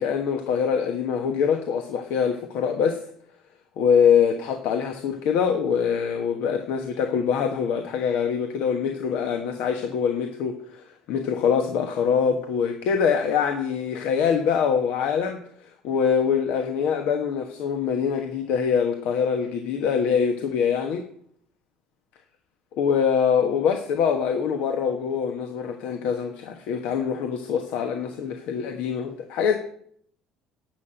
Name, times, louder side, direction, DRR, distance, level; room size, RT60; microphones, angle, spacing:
voice 1, 0.0-3.0 3.8-15.4 15.8-21.1 22.8-29.6, left 7 dB, 70° left, 5 dB, 1.3 m, -24 dB
11.0 x 6.1 x 8.9 m, 0.64 s
hypercardioid pair, 75°, 3 cm